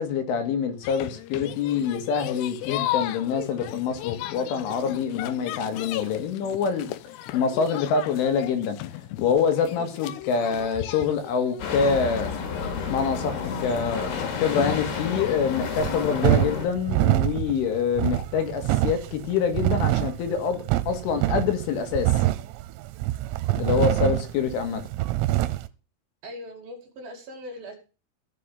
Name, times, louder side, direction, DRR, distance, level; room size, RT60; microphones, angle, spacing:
voice 1, 0.0-6.9 7.3-12.3 12.9-22.2 23.6-24.8, left 6 dB, 70° left, 4.3 m, -26 dB
sound 1, 0.8-15.4, left 14 dB, 85° left, 2.4 m, -36 dB
sound 2, 11.6-16.7, left 5 dB, 55° left, 4.2 m, -31 dB
sound 3, 15.8-25.7, right 16 dB, 90° right, 3.6 m, -25 dB
voice 2, 26.2-27.7, equal, 50° right, 3.7 m, -40 dB
15.0 x 7.3 x 7.0 m
omnidirectional pair, 6.0 m